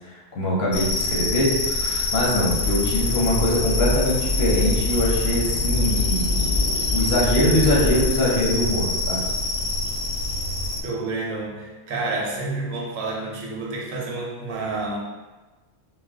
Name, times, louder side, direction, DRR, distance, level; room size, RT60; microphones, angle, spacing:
voice 1, 0.1-9.2, left 1 dB, 60° left, -4 dB, 0.8 m, -23 dB
sound 1, 0.7-10.8, left 3 dB, 90° left, 1.0 m, -26 dB
sound 2, 2.5-8.1, left 1 dB, 60° right, 0.9 m, -26 dB
voice 2, 10.8-15.0, right 3 dB, 85° right, -2 dB, 1.0 m, -29 dB
2.5 x 2.2 x 3.4 m, 1.2 s
omnidirectional pair, 1.4 m